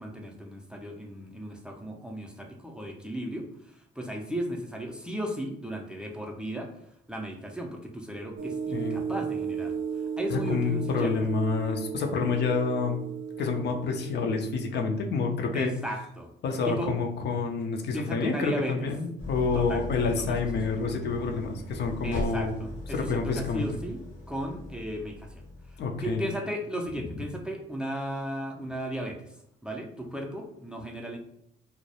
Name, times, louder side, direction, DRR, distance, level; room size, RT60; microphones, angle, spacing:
voice 1, 0.0-11.1 15.5-16.3 16.6-16.9 17.9-18.9 19.5-19.8 20.1-20.8 22.0-24.0 24.3-31.2, equal, 5° right, 1 dB, 0.4 m, -36 dB
sound 1, 8.4-15.1, right 6 dB, 55° right, 0.5 m, -35 dB
voice 2, 10.3-13.0 13.4-15.7 16.4-22.6 22.9-23.7 25.8-26.2, left 4 dB, 60° left, 3 dB, 0.4 m, -28 dB
Idling, 19.2-26.2, left 1 dB, 75° left, 0.9 m, -39 dB
2.2 x 2.0 x 2.8 m, 0.75 s
cardioid pair, 90°, 20 cm